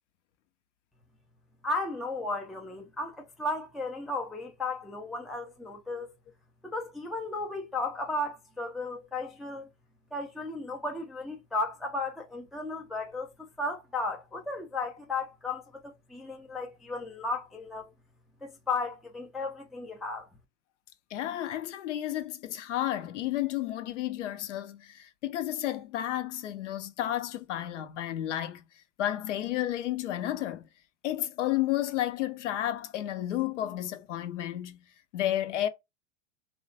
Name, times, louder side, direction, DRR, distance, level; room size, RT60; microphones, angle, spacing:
voice 1, 1.6-6.1 6.6-9.7 10.1-17.9 18.4-20.3, left 2 dB, ahead, 0.3 m, -35 dB
voice 2, 21.1-28.6 29.0-30.6 31.0-34.9 35.1-35.7, left 13 dB, 75° left, 0.7 m, -32 dB
3.0 x 2.2 x 2.5 m
hypercardioid pair, 105°, 37 cm